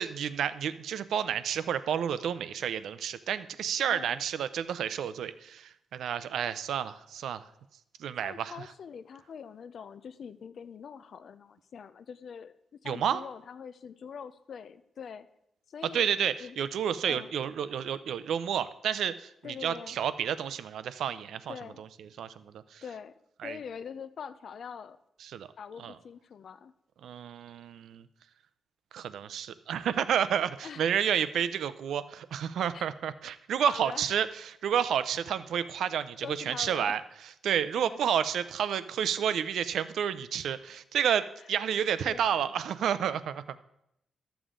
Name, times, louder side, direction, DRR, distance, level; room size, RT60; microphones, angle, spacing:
voice 1, 0.0-7.5 8.0-8.5 12.9-13.2 15.9-21.9 22.2-22.8 23.4-23.6 25.2-25.5 25.8-26.0 27.0-28.1 28.9-37.0 37.4-43.6, right 8 dB, 85° right, 14 dB, 0.5 m, -30 dB
voice 2, 8.2-15.3 15.7-16.1 16.4-16.6 17.0-17.3 19.4-20.0 21.5-21.8 22.8-23.1 23.4-25.0 25.6-26.7 30.6-30.8 32.7-32.9 33.7-34.1 36.2-37.0 37.8-38.0 42.0-42.6, left 7 dB, 55° left, 13 dB, 0.5 m, -44 dB
12.5 x 7.0 x 3.7 m, 0.80 s
wide cardioid pair, 150°, 0 cm